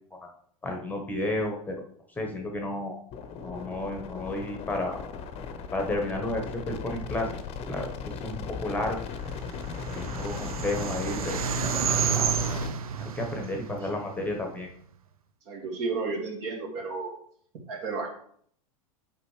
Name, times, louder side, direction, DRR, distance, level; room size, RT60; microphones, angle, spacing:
voice 1, 0.6-1.8 2.1-3.0 3.4-5.0 5.7-7.3 7.7-9.0 9.9-11.4 12.1-12.4 13.0-14.7, left 1 dB, 10° left, 2 dB, 1.1 m, -32 dB
sound 1, 3.1-12.7, left 6 dB, 35° left, 0.8 m, -37 dB
sound 2, 9.2-14.6, right 7 dB, 75° right, 0.6 m, -31 dB
voice 2, 15.5-17.1 17.7-18.1, right 4 dB, 50° right, 1 dB, 2.2 m, -32 dB
8.0 x 5.2 x 3.2 m, 0.62 s
figure-of-eight pair, 95°, 19 cm